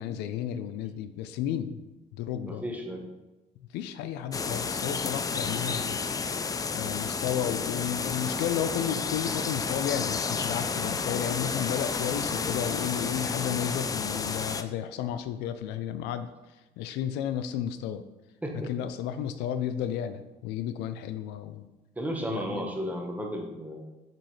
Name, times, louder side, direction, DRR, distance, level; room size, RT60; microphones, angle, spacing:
voice 1, 0.0-1.8 2.1-2.6 3.7-6.0 6.7-16.3 16.8-18.0 18.7-21.7 22.3-22.7, left 9 dB, 90° left, 11 dB, 0.5 m, -32 dB
voice 2, 2.4-3.1 18.4-18.7 22.0-23.8, equal, 10° right, 1 dB, 1.1 m, -34 dB
sound 1, 4.3-14.6, left 5 dB, 20° left, 0.3 m, -31 dB
7.2 x 5.2 x 3.2 m, 1.0 s
cardioid pair, 110°, 17 cm